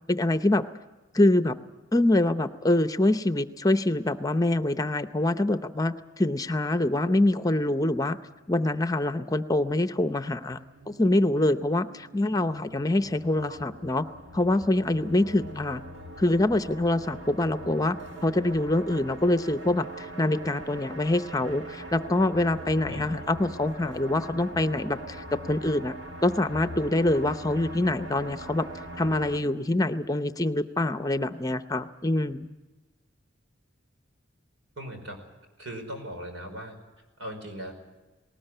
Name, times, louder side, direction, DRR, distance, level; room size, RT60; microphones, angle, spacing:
voice 1, 0.1-0.6 1.1-1.6 1.9-8.2 8.5-10.6 10.9-14.1 14.3-15.8 16.2-18.0 18.2-26.0 26.2-28.7 29.0-32.5, left 1 dB, 20° left, 11 dB, 0.6 m, -25 dB
sound 1, 10.4-29.4, right 1 dB, 65° right, 1.9 m, -42 dB
voice 2, 34.8-35.2 35.6-36.7 37.2-37.7, equal, 85° right, 5 dB, 5.2 m, -38 dB
19.5 x 19.0 x 9.0 m, 1.2 s
head